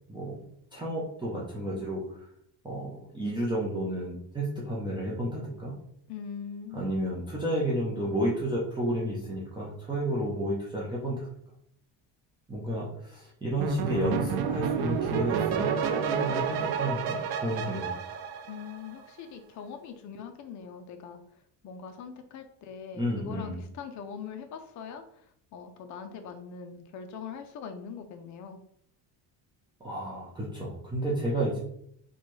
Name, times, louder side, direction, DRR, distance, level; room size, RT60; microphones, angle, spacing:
voice 1, 0.1-0.4 0.7-2.2 2.6-5.7 6.7-11.3 12.5-17.9 22.9-23.6 29.8-31.6, right 1 dB, 10° right, -6 dB, 0.5 m, -31 dB
voice 2, 6.1-6.9 18.5-21.2 21.6-25.2 25.5-28.6, left 6 dB, 45° left, 5 dB, 0.5 m, -42 dB
sound 1, 13.6-19.0, right 7 dB, 65° right, 0.5 m, -30 dB
4.2 x 2.3 x 3.1 m, 0.69 s
cardioid pair, 150°, 42 cm